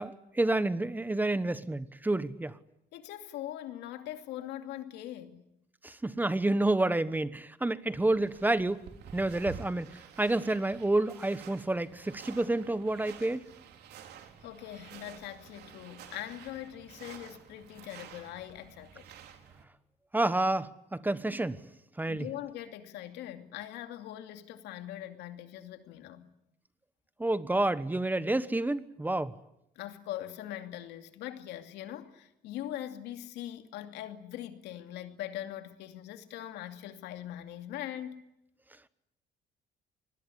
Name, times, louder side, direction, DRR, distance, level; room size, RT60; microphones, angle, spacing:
voice 1, 0.0-2.6 5.8-8.8 9.1-13.4 20.1-21.6 22.0-22.3 27.2-29.3, right 2 dB, 10° right, 1.2 m, -29 dB
voice 2, 2.9-5.5 14.4-19.0 22.1-26.3 29.8-38.2, left 12 dB, 85° left, 2.6 m, -42 dB
sound 1, 8.1-19.6, right 8 dB, 75° right, 3.9 m, -50 dB
26.0 x 20.5 x 10.0 m
cardioid pair, 110°, 17 cm